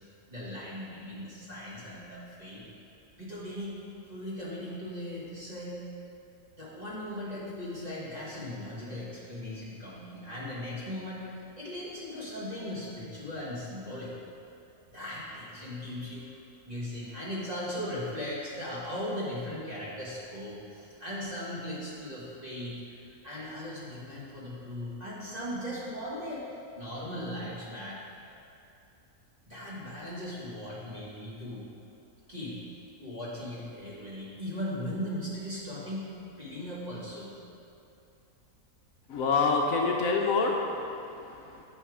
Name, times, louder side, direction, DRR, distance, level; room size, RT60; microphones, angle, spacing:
voice 1, 0.0-2.7 3.1-5.9 6.6-11.2 11.5-14.2 14.9-16.3 16.7-23.0 23.2-26.5 26.7-28.0 29.5-31.6 32.3-32.6 33.0-36.1 36.4-37.4, left 1 dB, 25° right, -8 dB, 1.6 m, -38 dB
voice 2, 39.1-41.6, left 4 dB, 70° left, 0 dB, 1.0 m, -27 dB
7.0 x 5.6 x 4.8 m, 2.8 s
omnidirectional pair, 1.6 m